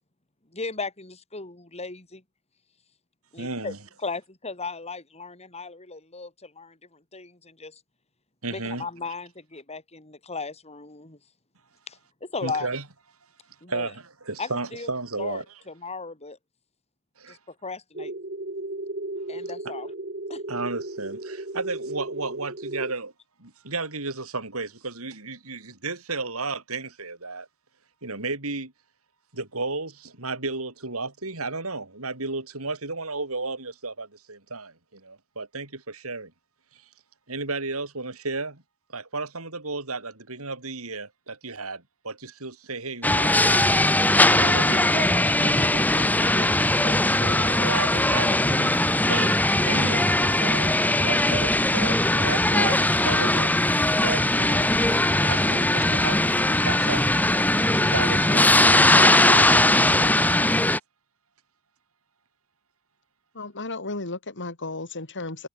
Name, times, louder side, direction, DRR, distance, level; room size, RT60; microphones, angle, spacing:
voice 1, 0.5-2.2 3.3-3.7 4.0-7.8 8.5-11.2 11.9-12.7 13.6-13.9 14.4-14.9 15.2-16.4 17.3-18.1 19.3-19.9 20.3-20.4, left 4 dB, 30° left, 5.0 m, -36 dB
voice 2, 3.4-3.8 8.4-8.9 12.4-12.8 13.7-15.4 17.2-17.4 19.6-19.7 20.5-23.1 23.4-27.5 28.0-28.7 29.3-36.3 36.7-36.9 37.3-38.6 38.9-43.9 44.3-48.7 49.0-50.7 51.0-53.6 54.0-56.2 56.5-57.0 57.8-60.1, right 3 dB, 70° right, 5.0 m, -33 dB
sound 1, 17.9-22.9, right 2 dB, 45° right, 4.0 m, -35 dB
sound 2, 43.0-60.8, left 1 dB, 10° left, 1.7 m, -20 dB
voice 3, 63.3-65.5, left 2 dB, 55° left, 3.7 m, -34 dB
head